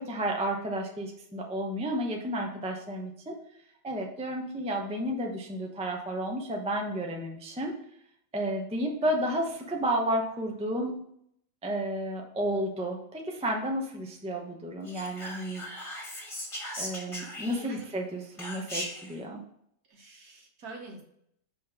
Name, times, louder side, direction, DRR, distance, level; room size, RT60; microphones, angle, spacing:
voice 1, 0.0-3.4 3.8-7.7 8.3-11.0 11.6-15.6 16.8-19.4, right 1 dB, 10° right, 1 dB, 0.4 m, -32 dB
Whispering, 14.9-17.9 18.4-19.1, left 1 dB, 20° left, 1.4 m, -38 dB
voice 2, 17.5-17.9 19.9-21.0, right 3 dB, 60° right, 1 dB, 1.6 m, -46 dB
5.4 x 3.7 x 5.8 m, 0.70 s
omnidirectional pair, 1.9 m